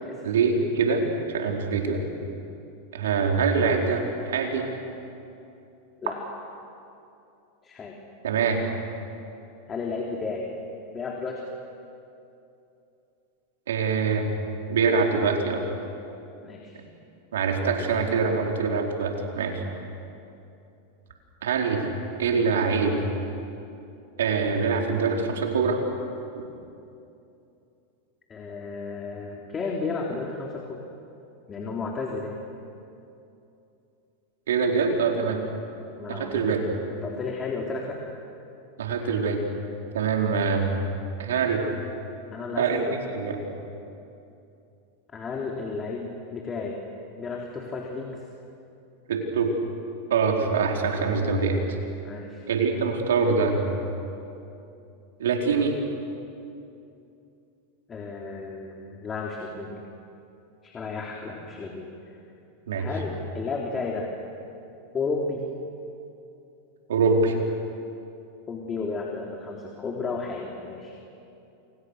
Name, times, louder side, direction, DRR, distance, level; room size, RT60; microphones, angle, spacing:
voice 1, 0.2-1.0 1.3-2.0 2.9-4.7 8.2-8.6 13.7-14.3 14.7-15.6 17.3-19.6 21.4-21.9 22.2-23.1 24.2-25.8 34.5-35.4 36.1-36.6 38.8-39.4 39.9-40.7 41.2-41.7 42.6-42.9 43.1-43.4 49.1-49.6 50.1-51.8 52.5-53.6 55.2-55.8 62.7-62.9 66.9-67.3, right 5 dB, 80° right, 1 dB, 4.5 m, -24 dB
voice 2, 7.6-7.9 9.7-10.5 10.9-11.4 16.4-16.8 28.3-30.8 31.5-32.4 36.0-36.4 36.9-38.0 42.3-43.0 45.1-46.8 47.2-48.2 52.0-52.4 57.9-59.8 60.6-61.9 62.8-64.1 64.9-65.4 68.5-70.9, left 4 dB, 25° left, 0 dB, 3.5 m, -33 dB
29.0 x 28.0 x 6.7 m, 2.7 s
hypercardioid pair, 105°, 0 cm